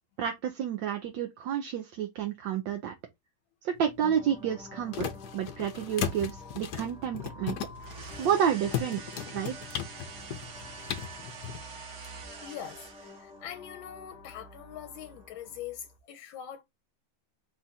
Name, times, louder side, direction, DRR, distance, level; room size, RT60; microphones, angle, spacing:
voice 1, 0.2-2.9 3.6-7.6 8.2-9.0 9.3-9.5, right 9 dB, 75° right, 1.3 m, -30 dB
sound 1, 3.7-11.6, left 9 dB, 65° left, 1.1 m, -38 dB
sound 2, 4.0-16.0, left 1 dB, 5° right, 0.6 m, -49 dB
sound 3, 7.8-13.4, right 5 dB, 60° right, 1.5 m, -46 dB
voice 2, 12.4-16.6, left 10 dB, 85° left, 1.4 m, -43 dB
4.2 x 2.4 x 4.0 m
omnidirectional pair, 2.1 m